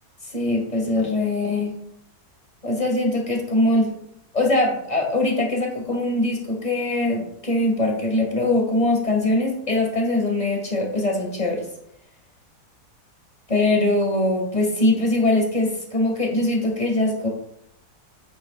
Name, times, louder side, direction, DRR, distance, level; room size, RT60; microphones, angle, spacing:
voice 1, 0.2-1.8 2.6-3.9 4.3-11.6 13.5-17.3, left 2 dB, 25° left, 0 dB, 2.2 m, -22 dB
9.3 x 8.6 x 2.5 m, 0.76 s
omnidirectional pair, 1.7 m